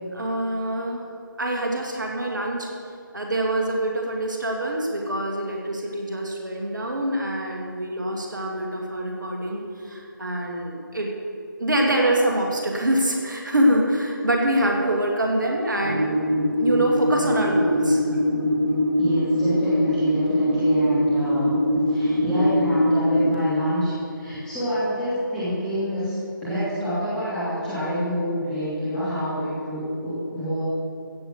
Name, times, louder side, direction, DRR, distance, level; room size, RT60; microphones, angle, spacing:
voice 1, 0.1-1.0 1.4-2.7 3.1-11.1 11.6-16.2 16.6-18.2, right 1 dB, 60° right, 0 dB, 2.1 m, -25 dB
sound 1, 15.8-23.3, equal, 20° right, 1.7 m, -22 dB
voice 2, 19.0-21.5 21.9-26.2 26.4-30.6, equal, 5° left, -14 dB, 2.9 m, -27 dB
15.5 x 8.8 x 6.5 m, 2.5 s
figure-of-eight pair, 160°, 11 cm